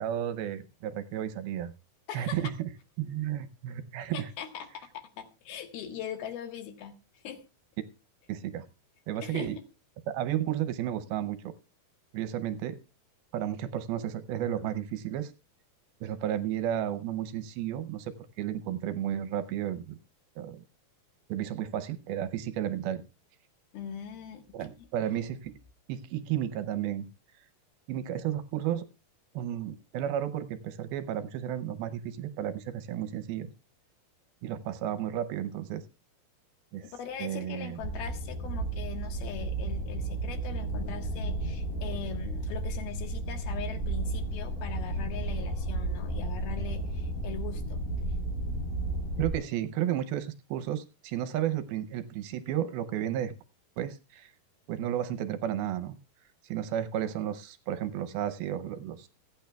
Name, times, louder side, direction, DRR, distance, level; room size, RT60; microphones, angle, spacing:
voice 1, 0.0-1.7 2.1-2.7 3.0-4.3 8.3-8.7 9.1-9.6 10.1-11.5 12.1-12.8 13.3-15.3 16.0-19.9 20.4-20.6 21.3-23.0 24.5-25.6 25.9-27.1 27.9-28.9 29.3-33.5 34.4-35.8 36.7-36.9 37.2-37.8 49.2-53.3 53.8-54.3 54.7-56.0 56.4-59.1, right 11 dB, 80° right, 11 dB, 2.5 m, -33 dB
voice 2, 2.1-2.4 4.1-7.4 9.2-9.5 23.7-24.9 36.8-47.8 49.2-49.3, left 9 dB, 75° left, 6 dB, 3.3 m, -41 dB
sound 1, 37.8-49.3, right 2 dB, 40° left, 4.6 m, -33 dB
25.5 x 8.9 x 2.3 m, 0.29 s
omnidirectional pair, 4.5 m